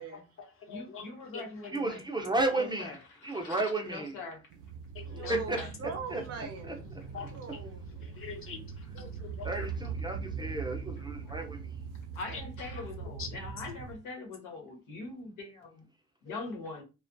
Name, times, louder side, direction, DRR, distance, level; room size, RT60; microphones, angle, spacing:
voice 1, 0.1-1.1 1.3-1.4 4.9-5.3 7.1-7.6 8.0-8.6 8.9-9.7 12.3-12.4 13.0-13.3 16.3-16.4, left 6 dB, 45° left, 0.9 m, -44 dB
voice 2, 0.7-4.5 5.1-5.7 10.9-11.4 12.1-15.9 16.2-16.8, left 3 dB, 90° left, 1.0 m, -43 dB
voice 3, 1.7-2.9 3.2-4.2 5.3-5.6 6.1-6.2 6.6-6.7 9.4-11.6, right 2 dB, 15° right, 0.5 m, -32 dB
sound 1, 4.5-14.0, right 6 dB, 85° right, 0.5 m, -41 dB
voice 4, 5.1-6.9 7.3-7.9, right 5 dB, 55° right, 0.7 m, -41 dB
2.4 x 2.2 x 2.6 m
cardioid pair, 90°, 30 cm